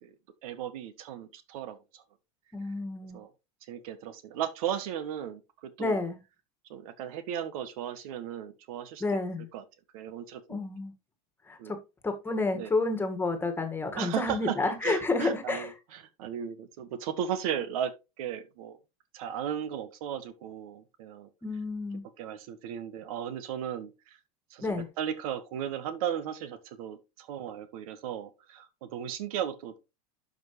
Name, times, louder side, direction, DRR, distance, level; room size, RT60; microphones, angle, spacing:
voice 1, 0.4-2.0 3.1-3.3 3.7-6.0 6.7-9.0 9.5-9.6 9.9-10.6 11.6-11.7 12.5-12.7 13.9-14.6 14.8-15.7 16.2-18.8 19.1-21.3 22.2-24.2 24.5-24.7 25.0-29.8, right 9 dB, 75° right, 1.6 m, -36 dB
voice 2, 2.5-3.2 5.8-6.2 9.0-9.5 10.5-10.9 11.5-11.8 12.0-15.7 21.4-22.0 24.6-24.9, left 3 dB, 10° left, 1.7 m, -30 dB
11.5 x 5.3 x 3.1 m
supercardioid pair, 140°, 19 cm